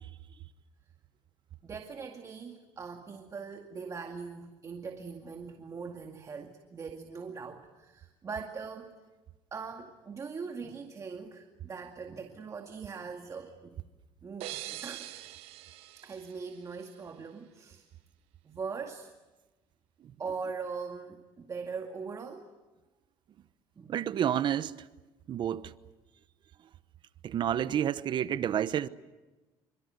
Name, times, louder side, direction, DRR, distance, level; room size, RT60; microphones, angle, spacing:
voice 1, 1.6-9.0 9.5-13.8 14.2-15.1 16.0-17.9 18.4-19.1 20.2-22.5 23.8-24.2, right 5 dB, 35° right, 2.2 m, -41 dB
sound 1, 14.4-17.2, right 16 dB, 85° right, 1.1 m, -44 dB
voice 2, 23.9-24.7 25.3-25.7 27.2-28.9, right 10 dB, 50° right, 1.0 m, -29 dB
27.5 x 25.0 x 8.1 m
cardioid pair, 110°, 10 cm